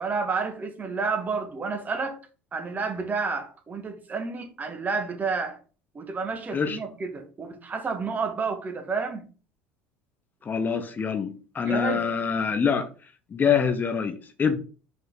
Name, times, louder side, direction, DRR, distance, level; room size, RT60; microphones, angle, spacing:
voice 1, 0.0-2.2 2.5-5.6 5.9-9.3 11.6-12.1, right 4 dB, 30° right, 1.8 m, -30 dB
voice 2, 10.5-12.9 13.3-14.6, left 6 dB, 30° left, 1.0 m, -25 dB
5.6 x 5.5 x 4.1 m
figure-of-eight pair, 65°, 6 cm